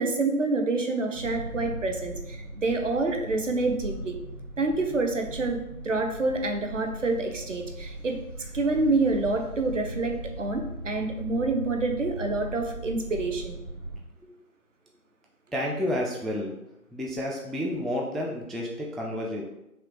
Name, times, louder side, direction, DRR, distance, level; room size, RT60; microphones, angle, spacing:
voice 1, 0.0-4.2 4.6-13.6, right 3 dB, 60° right, 4 dB, 0.7 m, -27 dB
sound 1, 1.1-14.0, right 1 dB, 25° right, 0.9 m, -39 dB
voice 2, 15.5-16.5 16.9-19.4, left 1 dB, ahead, -2 dB, 0.3 m, -30 dB
5.7 x 2.2 x 3.0 m, 0.91 s
figure-of-eight pair, 160°, 44 cm